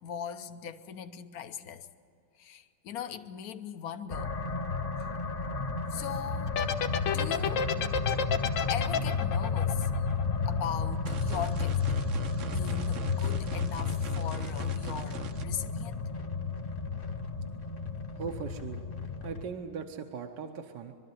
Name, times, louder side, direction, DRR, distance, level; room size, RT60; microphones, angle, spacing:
voice 1, 0.0-1.9 2.4-4.4 5.9-6.6 7.0-7.7 8.7-10.1 10.4-12.0 12.5-16.0, left 8 dB, 60° left, 10 dB, 1.3 m, -39 dB
sound 1, 4.1-19.4, left 4 dB, 35° left, 1.2 m, -32 dB
sound 2, 6.5-10.8, left 7 dB, 85° left, 1.7 m, -30 dB
sound 3, 11.1-15.4, right 7 dB, 55° right, 1.0 m, -44 dB
voice 2, 18.1-18.8 19.2-20.9, right 6 dB, 75° right, 5 dB, 1.5 m, -39 dB
23.0 x 13.0 x 9.4 m, 2.3 s
omnidirectional pair, 2.0 m